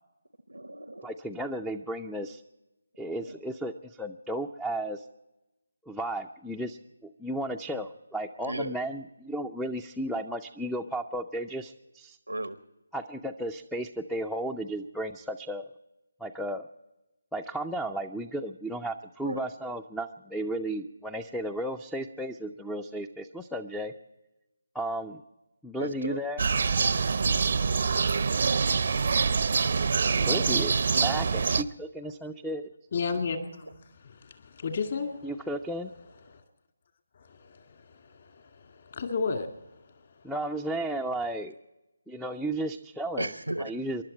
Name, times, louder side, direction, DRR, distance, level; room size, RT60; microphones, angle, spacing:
voice 1, 0.5-1.1 3.0-3.4 8.4-8.7 12.3-12.6 19.2-19.5 25.8-26.2 43.2-43.7, right 1 dB, 90° right, 0.9 m, -35 dB
voice 2, 1.0-2.4 3.0-5.0 5.9-12.2 12.9-15.7 16.2-16.7 17.3-23.9 24.7-25.2 25.6-26.4 30.1-32.7 35.2-35.9 40.2-41.5 42.1-43.3 43.6-44.0, right 1 dB, ahead, 0.5 m, -34 dB
sound 1, 26.4-31.6, right 5 dB, 50° right, 0.6 m, -25 dB
voice 3, 32.9-33.7 34.0-35.3 36.3-36.4 37.1-39.7, left 5 dB, 45° left, 2.2 m, -33 dB
28.0 x 12.0 x 4.3 m
figure-of-eight pair, 150°, 0 cm